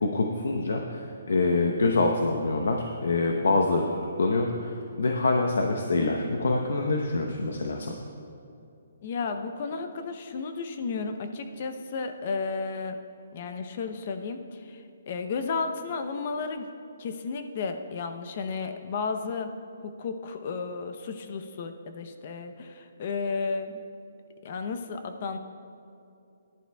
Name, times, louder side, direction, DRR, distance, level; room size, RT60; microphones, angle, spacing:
voice 1, 0.0-3.9 4.2-7.9, left 3 dB, 80° left, 2 dB, 0.9 m, -25 dB
voice 2, 9.0-13.0 13.3-14.8 15.1-16.7 17.0-19.5 19.8-23.8 24.4-25.4, left 4 dB, 40° left, 7 dB, 0.7 m, -33 dB
18.5 x 11.0 x 2.3 m, 2.6 s
hypercardioid pair, 170°, 0 cm